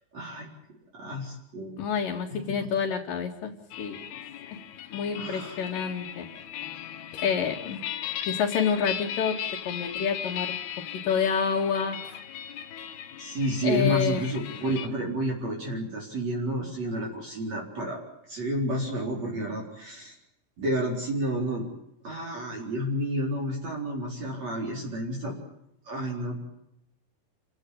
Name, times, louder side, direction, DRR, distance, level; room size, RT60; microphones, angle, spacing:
voice 1, 0.1-0.5 0.9-1.9 2.3-2.7 5.2-5.6 13.2-18.0 18.3-20.1 20.6-21.7 22.0-25.4 25.9-26.4, equal, 45° right, -2 dB, 5.3 m, -30 dB
voice 2, 1.8-3.5 3.8-4.0 4.9-6.3 7.2-7.8 8.3-9.4 9.7-10.6 11.1-12.0 13.6-14.2, left 6 dB, 60° left, -2 dB, 3.7 m, -28 dB
sound 1, 3.7-14.9, left 10 dB, 80° left, 3.4 m, -37 dB
29.5 x 17.0 x 8.8 m, 0.83 s
omnidirectional pair, 4.5 m